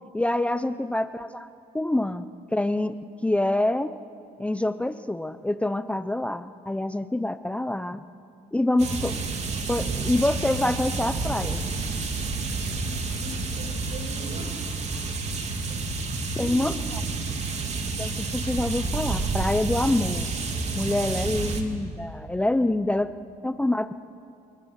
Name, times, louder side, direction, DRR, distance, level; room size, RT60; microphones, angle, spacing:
voice 1, 0.1-1.5 1.7-3.0 3.2-4.0 4.4-8.0 8.5-9.2 9.7-11.7 16.4-17.0 18.0-20.3 20.7-23.1 23.4-23.9, left 1 dB, 5° left, 11 dB, 0.6 m, -26 dB
sound 1, 8.8-21.6, right 3 dB, 40° right, 2.9 m, -29 dB
voice 2, 12.7-14.5 14.9-15.8 16.4-16.9, equal, 60° right, 3 dB, 6.1 m, -43 dB
30.0 x 26.0 x 6.5 m, 2.8 s
cardioid pair, 110°, 17 cm